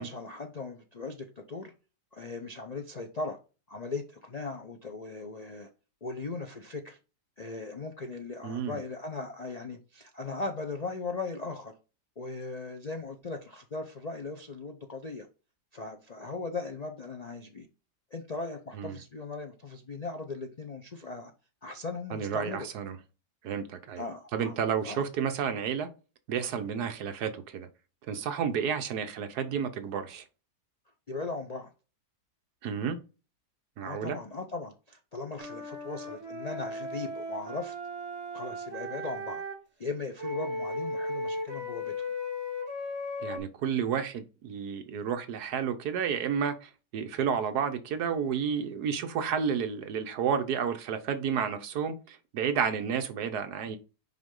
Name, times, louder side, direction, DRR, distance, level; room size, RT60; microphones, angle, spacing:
voice 1, 0.0-1.7 2.1-3.4 3.7-5.7 6.0-7.0 7.4-11.8 12.2-15.3 15.7-17.7 18.1-21.3 21.6-22.7 24.0-25.0 31.1-31.7 33.8-37.7 38.3-39.4 39.8-41.9, left 3 dB, 70° left, 0.3 m, -38 dB
voice 2, 8.4-8.8 18.7-19.0 22.1-23.0 23.4-24.0 24.3-25.9 26.3-27.7 28.1-30.2 32.6-33.0 33.8-34.2 43.2-53.8, right 7 dB, 70° right, 1.3 m, -31 dB
Wind instrument woodwind instrument, 35.4-39.6 40.2-43.4, left 1 dB, 40° right, 2.0 m, -36 dB
5.9 x 5.1 x 3.7 m
omnidirectional pair, 1.9 m